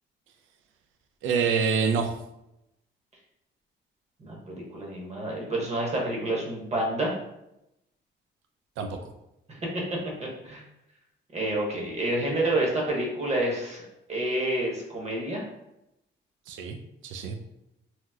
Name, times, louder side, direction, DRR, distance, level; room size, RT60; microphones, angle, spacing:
voice 1, 1.2-2.2 8.8-9.1 16.5-16.8 17.0-17.4, right 6 dB, 80° right, 5 dB, 0.4 m, -26 dB
voice 2, 4.2-7.1 9.5-9.6 10.2-10.6 11.3-13.8 14.1-15.5, right 1 dB, 35° right, -2 dB, 1.0 m, -28 dB
2.9 x 2.0 x 3.5 m, 0.86 s
cardioid pair, 90°, 20 cm